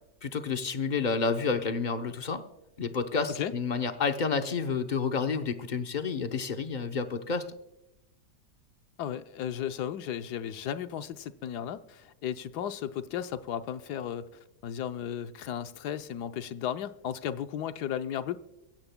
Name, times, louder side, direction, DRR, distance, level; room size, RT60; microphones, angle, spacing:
voice 1, 0.2-2.4 2.8-7.4, left 5 dB, 45° left, 7 dB, 0.6 m, -30 dB
voice 2, 9.0-14.3 14.6-18.4, left 10 dB, 75° left, 10 dB, 1.2 m, -35 dB
23.5 x 16.0 x 2.2 m, 0.93 s
omnidirectional pair, 1.8 m